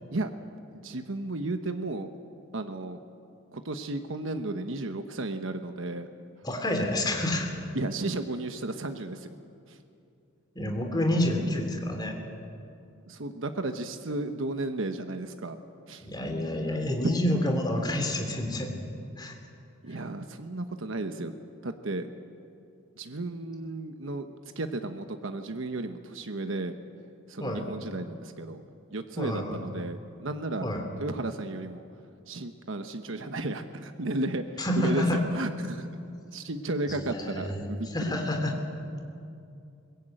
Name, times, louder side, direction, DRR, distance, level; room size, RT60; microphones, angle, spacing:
voice 1, 0.7-2.1 2.5-3.0 3.5-6.1 7.7-9.3 9.7-9.8 13.1-15.6 15.9-16.1 16.7-16.8 19.8-21.3 21.6-22.1 23.0-26.8 27.3-28.6 28.9-30.7 31.0-31.9 32.3-35.9 36.3-38.2, right 2 dB, 65° right, 7 dB, 1.1 m, -34 dB
voice 2, 6.4-7.5 10.5-12.1 16.0-18.7 19.2-19.3 27.4-27.7 29.2-29.6 30.6-30.9 34.6-35.2 36.1-36.2 36.9-37.7 37.9-38.5, left 1 dB, 20° left, 3 dB, 3.0 m, -28 dB
22.5 x 20.5 x 9.0 m, 2.6 s
head